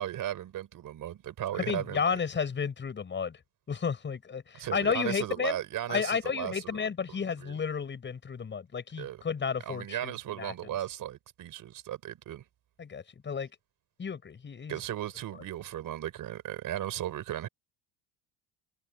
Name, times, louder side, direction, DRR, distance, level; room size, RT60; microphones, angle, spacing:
voice 1, 0.0-2.2 4.5-6.8 7.1-7.6 9.0-9.2 9.7-12.4 14.7-17.5, right 12 dB, 40° right, 4.5 m, -36 dB
voice 2, 1.5-3.4 3.7-5.6 5.9-10.7 12.8-13.5 14.0-14.8, left 6 dB, 20° left, 7.8 m, -32 dB
cardioid pair, 160°, 49 cm